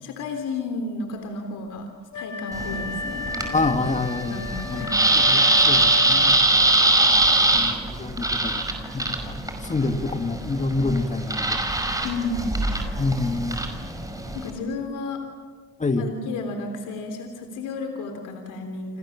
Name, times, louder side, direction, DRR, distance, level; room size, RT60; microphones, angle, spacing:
voice 1, 0.0-1.9 2.1-3.6 4.3-5.0 12.0-12.6 14.3-15.2 16.0-19.0, left 3 dB, 85° left, 4 dB, 3.5 m, -32 dB
Wind instrument woodwind instrument, 2.1-6.6, left 4 dB, 65° left, 3.4 m, -34 dB
sound 1, 2.5-14.5, right 2 dB, 10° right, 5.5 m, -22 dB
voice 2, 3.5-4.8 5.1-6.4 7.5-8.7 8.9-11.6 13.0-13.6 15.8-16.1, left 3 dB, 25° left, 8 dB, 2.1 m, -27 dB
30.0 x 27.0 x 7.3 m, 1.5 s
cardioid pair, 90°, 30 cm